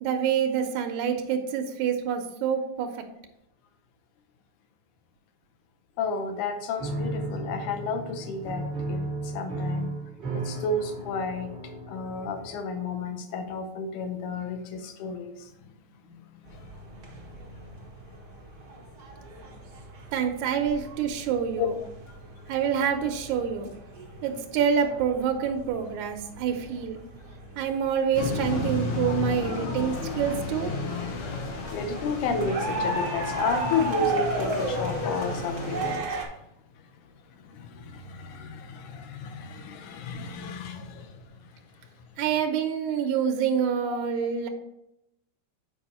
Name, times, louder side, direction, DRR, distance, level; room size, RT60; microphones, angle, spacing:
voice 1, 0.0-2.9 20.1-21.7 22.5-23.7 24.2-27.0 27.6-30.7 42.2-44.5, right 7 dB, 85° right, 4 dB, 2.1 m, -27 dB
voice 2, 6.0-9.1 9.3-9.9 10.3-11.5 11.9-15.5 16.1-16.2 16.5-16.6 21.6-21.7 31.7-36.2 37.4-41.1 43.9-44.1, left 4 dB, 90° left, 7 dB, 2.2 m, -32 dB
Piano, 6.8-12.7, right 2 dB, 25° right, 2.0 m, -34 dB
sound 1, 16.5-36.3, right 2 dB, 55° right, 1.0 m, -36 dB
sound 2, 28.1-36.0, left 3 dB, 65° left, 2.0 m, -33 dB
7.1 x 4.8 x 4.2 m, 0.82 s
omnidirectional pair, 3.4 m